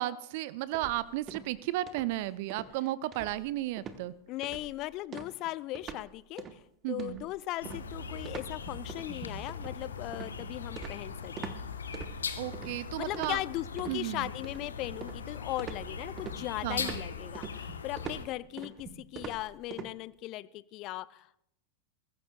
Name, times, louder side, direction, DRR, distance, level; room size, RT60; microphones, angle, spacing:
voice 1, 0.0-4.1 6.8-7.2 12.4-13.4 13.9-14.3 16.6-17.0, right 15 dB, 50° right, 19 dB, 0.5 m, -34 dB
sound 1, 0.7-1.6 1.9-2.2 2.5-2.7 3.1-3.5 3.8-4.0 4.4-4.8 5.1-6.1 6.4-6.6 7.0-11.6 11.9-12.7 13.1-14.0 14.4-15.3 15.6-19.9, right 6 dB, 25° right, 1.0 m, -44 dB
voice 2, 4.3-6.6 6.9-11.5 12.7-21.4, left 17 dB, 40° left, 19 dB, 0.4 m, -38 dB
sound 2, 7.6-18.3, left 5 dB, 70° left, 1.0 m, -40 dB
21.5 x 14.5 x 2.3 m, 0.77 s
figure-of-eight pair, 90°, 0 cm